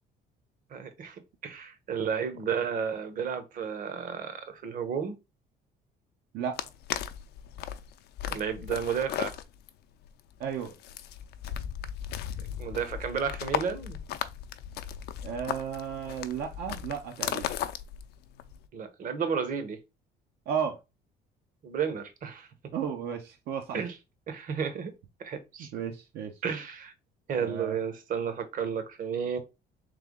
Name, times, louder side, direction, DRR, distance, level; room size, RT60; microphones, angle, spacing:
voice 1, 0.7-5.2 8.3-9.4 12.6-14.0 18.7-19.8 21.6-22.5 23.7-24.0 24.3-24.9 25.2-25.7 26.4-26.9 27.3-29.4, right 7 dB, 55° right, 1.0 m, -32 dB
sound 1, 6.6-18.7, left 10 dB, 75° left, 0.5 m, -36 dB
voice 2, 10.4-10.7 15.2-17.5 20.5-20.8 22.7-23.8 25.7-26.3 27.4-27.8, right 7 dB, 75° right, 0.8 m, -33 dB
3.4 x 3.3 x 3.6 m
cardioid pair, 110°, 17 cm